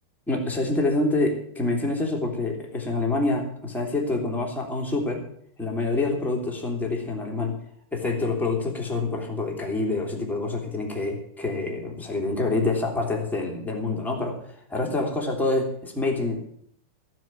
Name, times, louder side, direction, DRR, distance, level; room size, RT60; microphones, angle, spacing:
voice 1, 0.3-5.2 5.6-7.5 7.9-16.4, left 2 dB, ahead, 0 dB, 1.7 m, -26 dB
15.0 x 7.6 x 8.6 m, 0.66 s
omnidirectional pair, 5.3 m